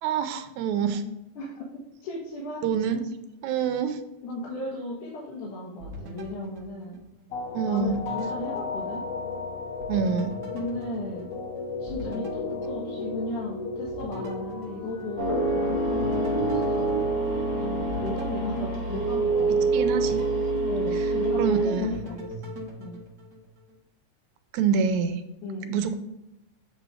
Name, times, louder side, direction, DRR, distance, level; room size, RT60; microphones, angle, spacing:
voice 1, 0.0-1.0 2.6-3.0 3.4-4.0 7.5-8.0 9.9-10.3 19.7-20.3 20.9-21.1 21.4-21.9 24.5-25.2 25.7-26.0, right 6 dB, 80° right, 8 dB, 1.9 m, -26 dB
voice 2, 1.4-3.0 4.2-7.0 7.6-9.0 10.5-11.3 11.8-17.0 17.5-19.7 20.7-22.5 22.8-23.0 25.4-25.8, left 1 dB, 90° left, -3 dB, 2.7 m, -35 dB
sound 1, 5.8-7.4 7.8-9.4 9.8-13.5 13.9-15.5 15.9-19.3 19.8-21.4 21.8-23.8, equal, 60° right, 0.8 m, -43 dB
sound 2, 7.3-19.5, left 2 dB, 75° left, 1.7 m, -35 dB
sound 3, 15.2-21.7, right 3 dB, 50° left, 2.0 m, -26 dB
8.1 x 4.0 x 4.8 m, 0.91 s
omnidirectional pair, 3.4 m